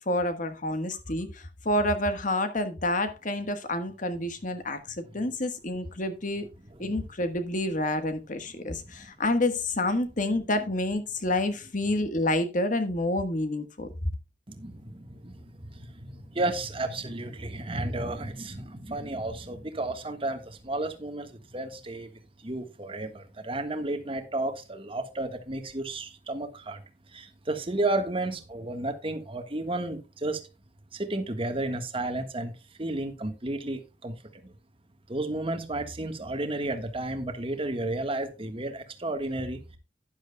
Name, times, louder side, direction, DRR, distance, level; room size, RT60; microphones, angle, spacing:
voice 1, 0.1-6.5 6.8-13.9, left 1 dB, 45° left, 1.4 m, -28 dB
voice 2, 6.7-7.0 8.6-9.1 14.5-26.8 27.1-30.4 30.9-32.5 32.8-34.5 35.1-39.8, right 2 dB, 30° right, 1.5 m, -33 dB
12.0 x 10.5 x 2.3 m
head